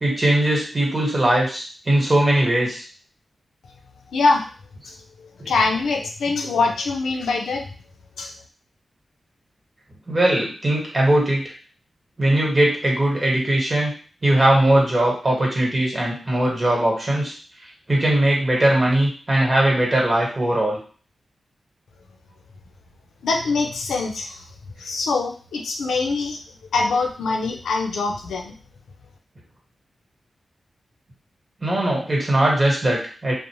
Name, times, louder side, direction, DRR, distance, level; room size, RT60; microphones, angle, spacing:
voice 1, 0.0-2.8 5.4-5.5 10.1-11.4 12.2-13.9 14.2-17.3 17.9-20.8 31.6-33.3, right 1 dB, 40° right, -2 dB, 1.2 m, -20 dB
voice 2, 4.1-4.4 4.9-5.0 5.4-7.6 8.2-8.3 23.2-24.4 24.8-26.4 26.7-28.5, left 3 dB, 90° left, 2 dB, 0.4 m, -23 dB
2.5 x 2.0 x 3.0 m, 0.40 s
cardioid pair, 40°, 0 cm